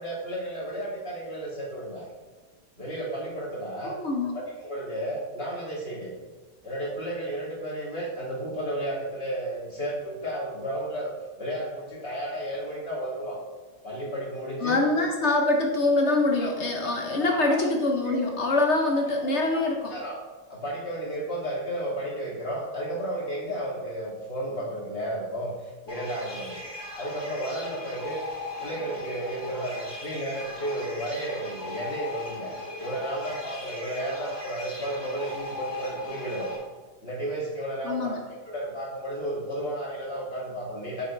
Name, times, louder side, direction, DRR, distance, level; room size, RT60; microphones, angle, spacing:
voice 1, 0.0-2.0 2.8-4.0 4.3-6.1 6.6-11.1 11.4-13.4 13.8-14.8 16.8-16.9 17.2-17.7 18.0-18.2 19.2-19.6 19.9-20.2 20.5-26.6 27.0-28.2 28.6-32.5 32.8-36.5 37.0-38.2 38.5-41.1, right 1 dB, 30° left, -6 dB, 2.7 m, -33 dB
voice 2, 3.8-4.3 14.6-20.0 37.8-38.2, left 2 dB, 60° left, 1 dB, 0.7 m, -24 dB
sound 1, 25.9-36.6, left 2 dB, 10° left, 2.7 m, -38 dB
9.1 x 7.2 x 3.3 m, 1.3 s
omnidirectional pair, 2.3 m